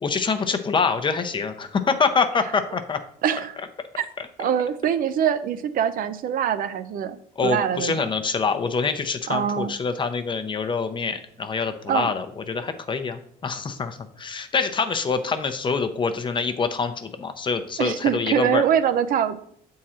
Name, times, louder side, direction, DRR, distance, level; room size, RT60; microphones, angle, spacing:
voice 1, 0.0-3.0 4.2-4.3 7.4-18.6, left 5 dB, 30° left, 8 dB, 0.6 m, -25 dB
voice 2, 3.2-3.6 4.0-4.1 4.4-7.9 9.3-9.7 11.9-12.1 17.8-19.4, right 9 dB, 55° right, 11 dB, 0.5 m, -23 dB
7.5 x 3.7 x 4.3 m, 0.64 s
cardioid pair, 110°, 17 cm